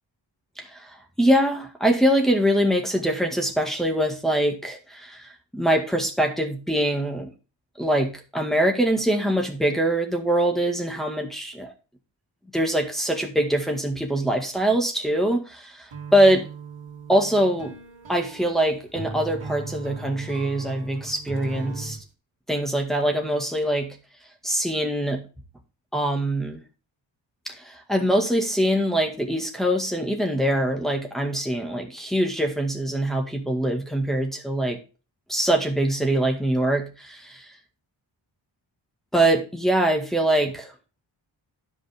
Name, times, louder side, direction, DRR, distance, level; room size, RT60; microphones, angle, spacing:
voice 1, 0.6-0.9 1.2-7.3 7.8-11.7 12.5-16.4 17.1-17.7 18.1-22.0 22.5-24.0 24.4-25.2 25.9-26.6 27.5-34.8 35.3-37.5 39.1-40.7, right 1 dB, ahead, 1 dB, 1.8 m, -23 dB
sound 1, 15.9-22.0, right 4 dB, 75° right, 2.7 m, -37 dB
12.0 x 5.4 x 3.5 m, 0.33 s
wide cardioid pair, 140°, 46 cm